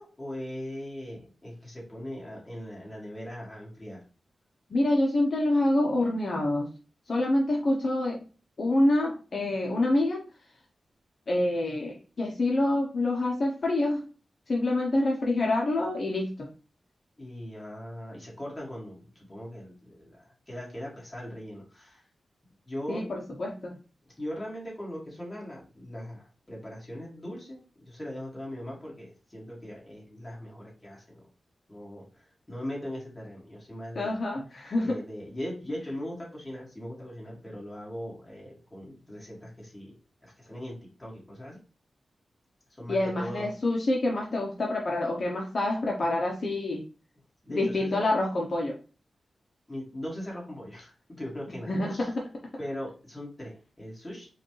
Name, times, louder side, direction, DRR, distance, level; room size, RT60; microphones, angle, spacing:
voice 1, 0.0-4.0 17.2-22.0 22.7-23.1 24.0-27.6 27.8-31.2 31.7-34.1 34.8-39.9 40.2-41.6 42.8-43.5 47.4-48.0 49.7-52.1 52.6-54.3, equal, 20° left, -5 dB, 2.0 m, -40 dB
voice 2, 4.7-6.7 7.1-8.2 8.6-10.2 11.3-14.1 14.5-16.5 22.9-23.8 33.9-35.0 42.9-46.8 47.5-48.8 51.7-52.3, left 1 dB, 55° left, -1 dB, 0.7 m, -27 dB
4.8 x 2.4 x 3.1 m, 0.36 s
wide cardioid pair, 90°, 0 cm